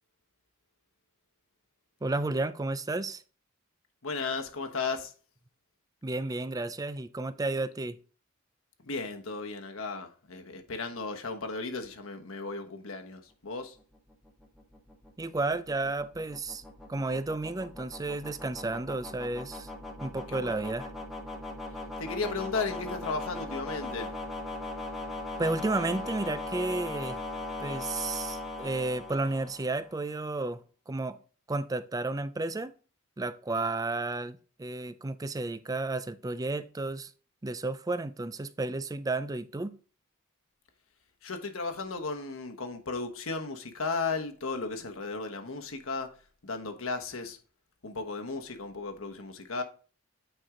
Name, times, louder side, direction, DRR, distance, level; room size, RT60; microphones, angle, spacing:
voice 1, 2.0-3.2 6.0-8.0 15.2-16.6 16.9-19.7 20.0-20.9 25.4-27.2 27.6-30.6 30.9-31.2 31.5-32.7 33.2-37.1 37.4-39.8, right 2 dB, 15° right, 0.4 m, -32 dB
voice 2, 4.0-5.1 8.8-13.8 20.3-20.5 22.0-24.1 41.2-46.1 46.4-47.4 47.8-49.6, left 4 dB, 75° left, 1.1 m, -35 dB
sound 1, 13.8-30.0, left 2 dB, ahead, 1.3 m, -40 dB
9.1 x 4.3 x 3.7 m
head